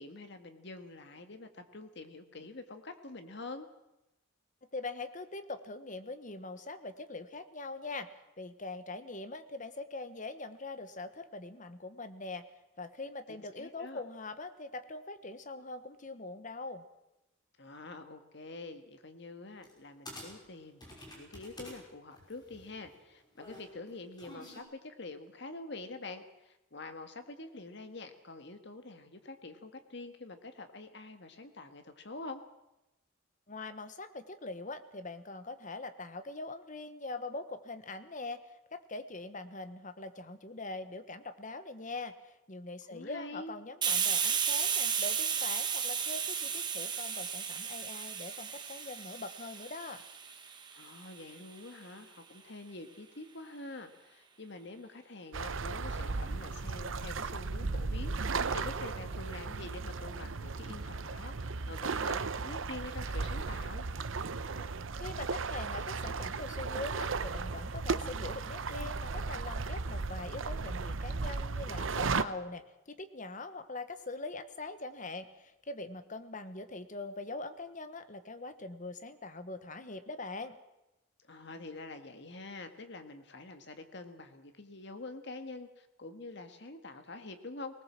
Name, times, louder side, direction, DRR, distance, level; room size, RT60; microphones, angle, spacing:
voice 1, 0.0-3.7 13.3-14.0 17.6-32.4 42.9-43.5 50.7-63.8 81.3-87.8, left 2 dB, 60° left, 7 dB, 1.8 m, -46 dB
voice 2, 4.7-12.4 12.8-16.8 33.5-38.4 38.7-50.0 64.6-64.7 65.0-80.6, left 2 dB, 40° left, 11 dB, 1.2 m, -42 dB
sound 1, 19.6-19.8 20.1-21.8 22.1-24.6, left 1 dB, 20° left, 5.7 m, -49 dB
Hiss, 43.8-51.2, right 7 dB, 20° right, 1.5 m, -33 dB
sound 2, 55.3-72.2, right 4 dB, 80° right, 0.8 m, -35 dB
19.5 x 19.0 x 7.5 m, 0.95 s
head